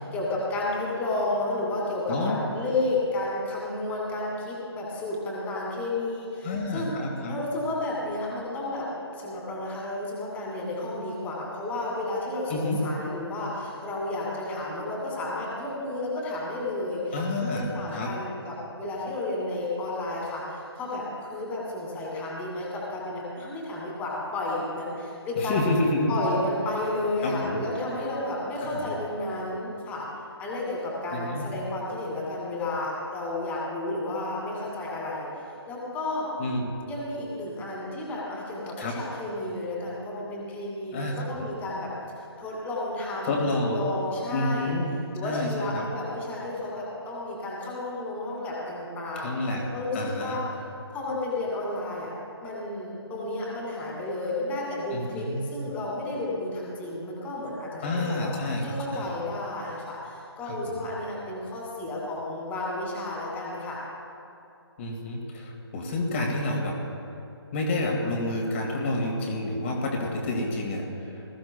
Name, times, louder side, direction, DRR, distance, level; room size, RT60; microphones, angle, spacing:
voice 1, 0.0-6.9 7.3-8.9 9.1-25.6 26.1-30.1 30.4-35.3 35.7-36.3 36.9-41.9 42.4-44.8 45.1-49.3 49.7-50.4 50.9-52.1 52.4-58.3 58.6-63.8, left 2 dB, 10° left, -4 dB, 2.4 m, -32 dB
voice 2, 6.4-7.4 12.5-12.8 17.1-18.1 25.4-26.2 27.2-27.6 28.6-28.9 31.1-31.5 36.4-36.7 38.8-39.0 40.9-41.5 43.2-43.8 44.3-44.9 45.2-45.9 49.2-49.6 49.9-50.4 54.9-55.4 57.8-59.1 60.4-60.8 64.8-66.8 67.5-71.3, left 2 dB, 30° left, 0 dB, 2.0 m, -29 dB
20.0 x 14.5 x 2.3 m, 2.7 s
figure-of-eight pair, 145°, 14 cm